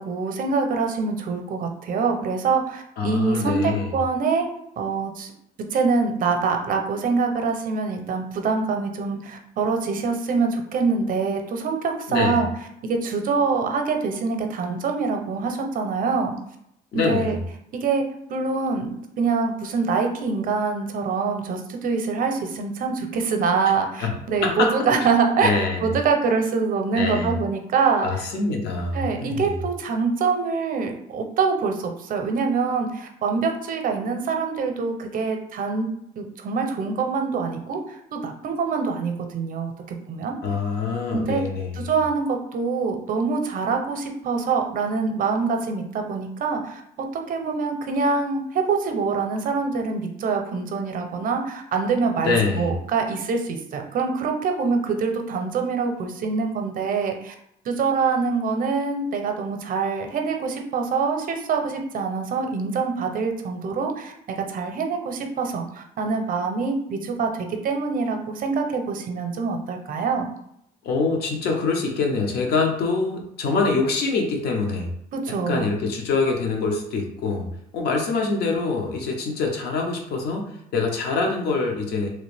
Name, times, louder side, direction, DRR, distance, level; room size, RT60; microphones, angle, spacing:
voice 1, 0.0-4.5 4.8-5.3 5.7-12.5 12.8-16.4 16.9-17.4 17.7-18.0 18.3-25.5 25.8-28.1 28.9-35.9 36.2-40.3 41.1-41.4 41.7-57.3 57.7-64.1 64.5-70.3 75.1-75.7, right 4 dB, 55° right, 4 dB, 0.6 m, -25 dB
voice 2, 3.0-3.9 12.1-12.4 16.9-17.4 24.0-24.1 24.4-24.7 25.4-25.9 26.9-27.4 28.0-29.5 40.4-41.8 52.2-52.7 70.8-74.9 75.3-77.5 77.7-82.1, left 4 dB, 70° left, 2 dB, 0.8 m, -24 dB
3.1 x 2.5 x 3.3 m, 0.77 s
cardioid pair, 110°, 17 cm